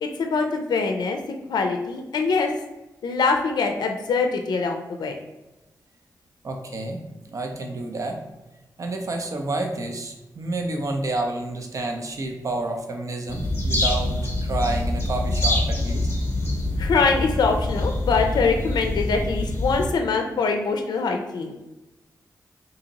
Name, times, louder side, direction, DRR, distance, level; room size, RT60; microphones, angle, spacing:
voice 1, 0.0-1.2 1.5-2.5 3.0-5.2 16.8-21.5, left 4 dB, 80° left, 4 dB, 0.4 m, -23 dB
voice 2, 6.4-8.2 8.8-16.1, right 2 dB, 50° right, 3 dB, 0.7 m, -29 dB
sound 1, 13.3-19.9, left 1 dB, 35° left, 0.9 m, -25 dB
2.8 x 2.7 x 3.9 m, 1.0 s
cardioid pair, 65°, 7 cm